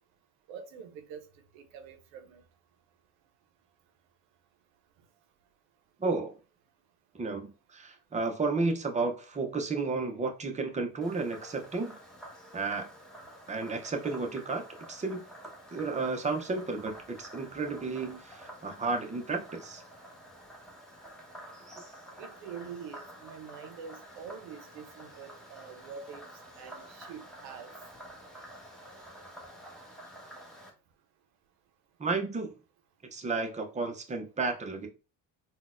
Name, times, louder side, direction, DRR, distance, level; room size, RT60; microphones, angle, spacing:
voice 1, 0.5-1.2 1.5-2.4 22.2-26.2 26.6-27.7, right 6 dB, 90° right, 0.6 m, -45 dB
voice 2, 6.0-6.4 7.1-12.0 12.5-12.9 13.5-15.2 15.7-19.8 32.0-32.5 33.1-34.9, right 3 dB, 20° right, 0.5 m, -32 dB
Frog, 11.0-30.7, right 1 dB, ahead, 0.9 m, -49 dB
3.8 x 2.2 x 2.4 m
cardioid pair, 105°, 41 cm